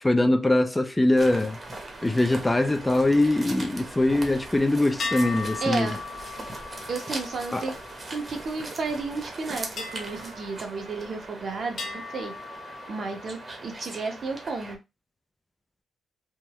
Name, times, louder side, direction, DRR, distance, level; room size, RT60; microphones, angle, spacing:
voice 1, 0.0-1.6 2.0-5.9 7.5-7.6, left 1 dB, 15° left, 0.4 m, -22 dB
sound 1, 1.2-14.8, right 2 dB, 30° right, 1.0 m, -40 dB
sound 2, 5.0-8.7 9.8-11.3 11.8-13.5, left 4 dB, 60° left, 0.9 m, -38 dB
voice 2, 5.6-6.0 6.9-7.8 8.1-12.3 12.9-14.8, right 4 dB, 55° right, 1.1 m, -32 dB
3.5 x 2.1 x 3.0 m
cardioid pair, 75°, 0 cm